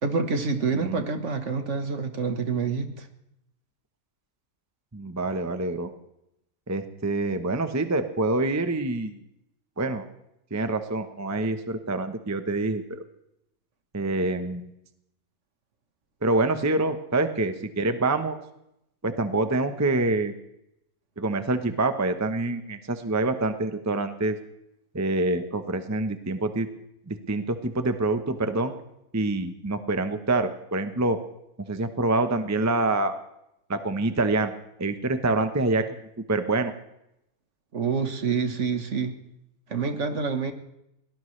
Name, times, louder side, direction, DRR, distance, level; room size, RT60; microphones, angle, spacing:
voice 1, 0.0-3.1 37.7-39.1 39.7-40.5, right 5 dB, 55° right, 7 dB, 1.6 m, -27 dB
voice 2, 4.9-5.9 6.7-9.2 9.8-10.0 10.5-13.0 13.9-14.7 16.2-18.4 19.0-20.3 21.2-24.4 24.9-26.7 27.1-28.7 29.1-31.2 31.7-33.1 33.7-34.5 34.8-35.8 36.3-36.7, right 2 dB, 15° right, 8 dB, 0.8 m, -26 dB
22.5 x 18.5 x 3.3 m, 0.82 s
omnidirectional pair, 1.5 m